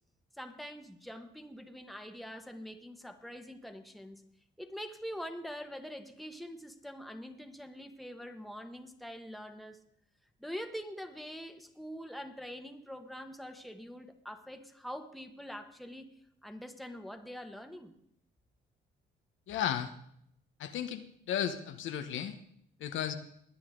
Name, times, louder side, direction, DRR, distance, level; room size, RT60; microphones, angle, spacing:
voice 1, 0.4-4.2 4.6-9.8 10.4-16.1 16.4-17.9, equal, ahead, 5 dB, 1.3 m, -44 dB
voice 2, 19.5-19.9 20.6-21.0 21.3-22.3 22.8-23.1, left 9 dB, 80° left, 8 dB, 1.0 m, -34 dB
20.0 x 9.7 x 3.8 m, 0.70 s
cardioid pair, 90°, 20 cm